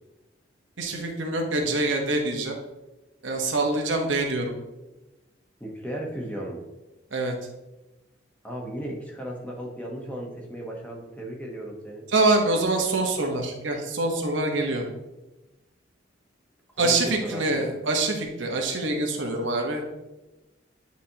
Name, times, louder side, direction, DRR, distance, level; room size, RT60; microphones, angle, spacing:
voice 1, 0.8-2.5 3.2-4.5 7.1-7.3 12.1-14.9 16.8-20.0, right 2 dB, 80° right, 2 dB, 1.1 m, -25 dB
voice 2, 5.6-6.6 8.4-12.1 16.8-17.7, right 1 dB, 10° left, -1 dB, 1.0 m, -35 dB
9.3 x 4.1 x 2.9 m, 1.1 s
head